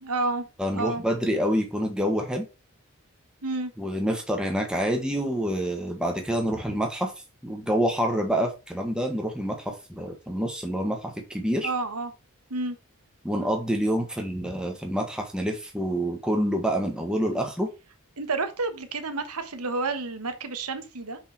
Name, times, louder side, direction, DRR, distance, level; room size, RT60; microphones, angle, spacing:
voice 1, 0.0-0.5 0.7-1.0 3.4-3.7 11.6-12.1 12.5-12.8 18.2-21.2, right 3 dB, 90° right, 1.2 m, -30 dB
voice 2, 0.6-2.5 3.8-7.1 7.4-11.7 13.2-17.7, equal, 5° right, 1.5 m, -27 dB
6.3 x 5.4 x 4.5 m
head